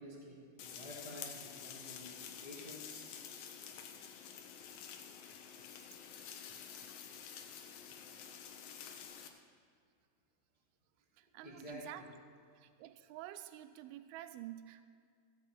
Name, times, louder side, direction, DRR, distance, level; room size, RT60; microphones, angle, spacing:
voice 1, 0.0-3.1 11.4-12.0, equal, 30° left, -5 dB, 0.7 m, -50 dB
sound 1, 0.6-9.3, left 8 dB, 75° left, 2.2 m, -49 dB
voice 2, 11.2-12.1 12.6-14.8, right 13 dB, 85° right, 10 dB, 2.2 m, -49 dB
15.5 x 6.2 x 7.6 m, 2.2 s
omnidirectional pair, 4.9 m